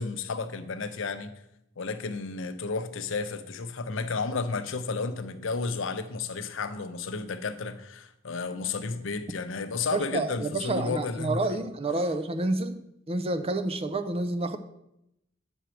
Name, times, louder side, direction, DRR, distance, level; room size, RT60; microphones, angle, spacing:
voice 1, 0.0-1.3 1.8-11.4, left 4 dB, 70° left, 0.6 m, -32 dB
voice 2, 9.9-12.8 13.1-14.6, right 2 dB, 30° right, 0.5 m, -29 dB
8.0 x 6.2 x 4.5 m
head